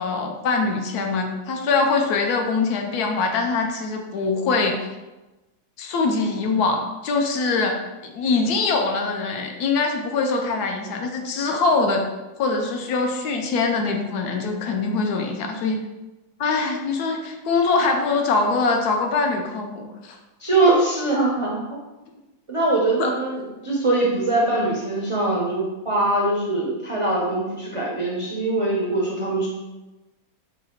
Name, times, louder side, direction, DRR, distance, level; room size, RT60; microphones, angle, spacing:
voice 1, 0.0-4.8 5.8-7.8 8.0-12.1 12.4-15.8 16.4-20.2 23.0-23.1, left 4 dB, 75° left, 3 dB, 1.1 m, -23 dB
voice 2, 20.4-21.6 22.5-29.5, right 2 dB, 45° right, -5 dB, 0.4 m, -22 dB
4.0 x 2.7 x 4.4 m, 1.1 s
omnidirectional pair, 1.7 m